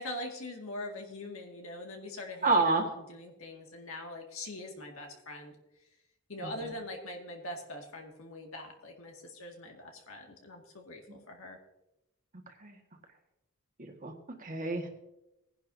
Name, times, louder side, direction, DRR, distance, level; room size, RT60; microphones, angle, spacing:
voice 1, 0.0-5.6 6.3-11.6, left 1 dB, 75° left, 2 dB, 2.1 m, -43 dB
voice 2, 2.4-2.8 6.4-6.7 11.1-11.2 12.5-12.8 13.8-14.1 14.4-14.9, right 3 dB, 40° right, 3 dB, 1.7 m, -29 dB
19.0 x 10.5 x 2.7 m, 0.92 s
head